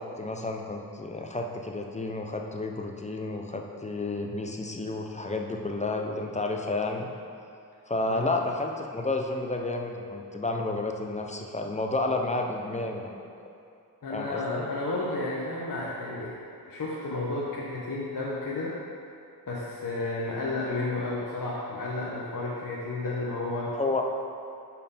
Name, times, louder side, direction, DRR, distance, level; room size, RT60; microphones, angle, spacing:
voice 1, 0.0-7.1 7.9-13.3 14.1-14.7 23.7-24.0, left 2 dB, 20° left, 2 dB, 0.6 m, -31 dB
voice 2, 14.0-16.4 16.7-18.8 19.5-23.8, left 2 dB, 50° left, -6 dB, 0.9 m, -32 dB
5.4 x 4.5 x 5.5 m, 2.5 s
cardioid pair, 75°, 40 cm